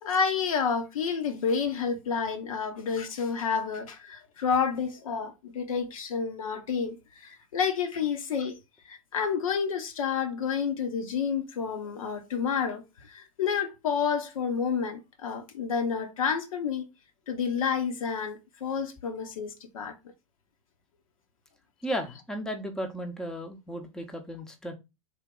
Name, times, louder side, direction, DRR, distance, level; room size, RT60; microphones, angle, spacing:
voice 1, 0.0-8.6 8.9-16.8 17.3-19.9, left 6 dB, 75° left, 0.9 m, -29 dB
voice 2, 21.8-24.7, equal, 5° left, 0.6 m, -35 dB
3.5 x 2.2 x 3.7 m
hypercardioid pair, 110°, 18 cm